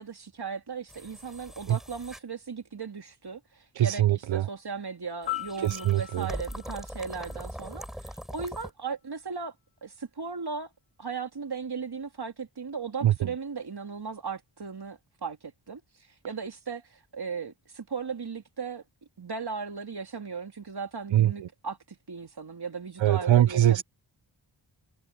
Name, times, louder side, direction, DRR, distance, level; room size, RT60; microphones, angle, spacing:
voice 1, 0.0-9.5 9.8-10.7 11.0-15.8 16.2-18.8 19.2-23.8, right 5 dB, 55° right, 3.1 m, -37 dB
sound 1, 0.9-2.2 5.2-8.7, equal, ahead, 4.9 m, -41 dB
voice 2, 3.8-4.4 5.6-6.3 13.0-13.1 21.1-21.3 23.0-23.8, right 12 dB, 70° right, 0.6 m, -22 dB
Piano, 5.3-8.2 16.3-16.5, left 18 dB, 60° left, 3.6 m, -40 dB
cardioid pair, 55°, 47 cm